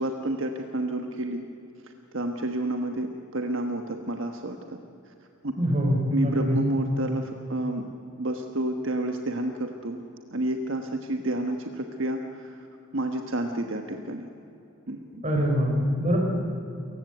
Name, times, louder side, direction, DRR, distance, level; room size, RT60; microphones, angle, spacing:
voice 1, 0.0-1.4 2.1-4.8 5.1-5.2 5.4-5.5 6.1-7.8 8.2-10.0 10.3-12.7 12.9-14.3 14.9-15.1, right 1 dB, 60° right, 5 dB, 1.3 m, -30 dB
voice 2, 5.6-6.6 15.2-16.2, equal, 30° right, 1 dB, 5.0 m, -24 dB
28.5 x 16.0 x 8.2 m, 2.8 s
head